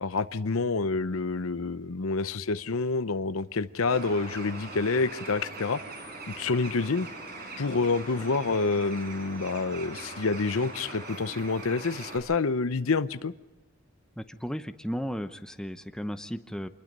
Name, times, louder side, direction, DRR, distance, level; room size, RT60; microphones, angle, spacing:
voice 1, 0.0-5.8 6.3-7.1 7.6-13.3, left 4 dB, 75° left, 14 dB, 0.8 m, -28 dB
Bird, 3.9-12.2, right 2 dB, 45° right, 5.8 m, -41 dB
voice 2, 14.2-16.7, equal, 5° left, 8 dB, 0.7 m, -35 dB
27.0 x 21.0 x 5.4 m, 1.1 s
head